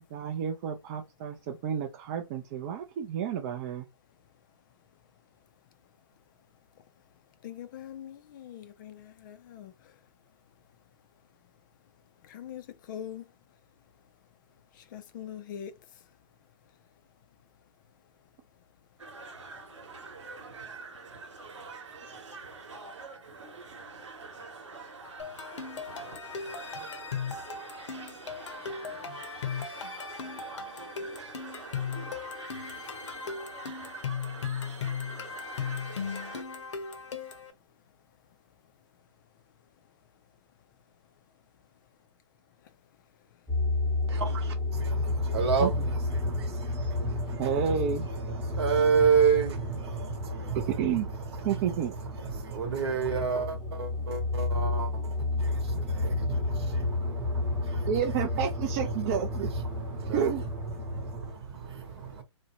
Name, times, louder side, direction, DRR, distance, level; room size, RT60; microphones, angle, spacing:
voice 1, 0.1-3.9 45.6-45.7 47.4-48.1 50.7-51.1 51.4-51.9 57.9-59.5 60.1-60.4, right 8 dB, 35° right, 0.4 m, -30 dB
voice 2, 7.4-9.7 12.3-12.6 12.9-13.2 14.9-15.7, left 10 dB, 40° left, 0.4 m, -42 dB
sound 1, 19.0-36.4, right 4 dB, 85° right, 1.0 m, -45 dB
sound 2, 25.2-37.5, left 6 dB, 75° left, 0.7 m, -37 dB
sound 3, 43.5-61.3, left 2 dB, 10° right, 0.8 m, -31 dB
voice 3, 44.1-62.2, right 6 dB, 60° right, 0.9 m, -31 dB
2.6 x 2.1 x 2.8 m
hypercardioid pair, 135°, 15 cm